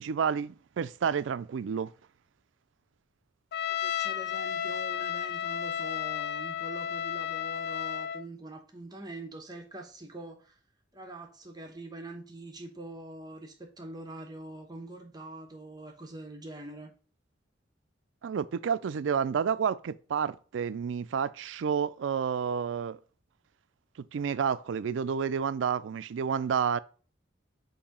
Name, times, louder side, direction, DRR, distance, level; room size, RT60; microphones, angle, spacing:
voice 1, 0.0-1.9 18.2-23.0 24.0-26.8, right 7 dB, 80° right, 0.4 m, -30 dB
Trumpet, 3.5-8.2, left 9 dB, 60° left, 0.3 m, -33 dB
voice 2, 3.6-10.6 10.9-16.9, right 2 dB, 20° right, 0.9 m, -44 dB
7.1 x 2.7 x 5.1 m
head